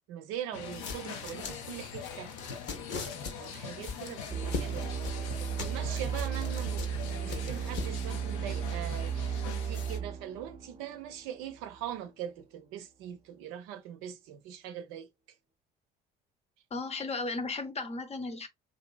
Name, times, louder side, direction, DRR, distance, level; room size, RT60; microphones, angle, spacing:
voice 1, 0.1-2.3 2.9-15.1, right 10 dB, 75° right, 0.6 m, -42 dB
sound 1, 0.5-10.0, left 6 dB, 75° left, 0.6 m, -43 dB
sound 2, 0.7-8.1, left 4 dB, 60° left, 0.9 m, -41 dB
sound 3, 4.3-11.8, right 8 dB, 30° right, 0.6 m, -35 dB
voice 2, 16.7-18.5, left 3 dB, 30° left, 0.7 m, -35 dB
2.8 x 2.6 x 2.2 m
hypercardioid pair, 60°, 21 cm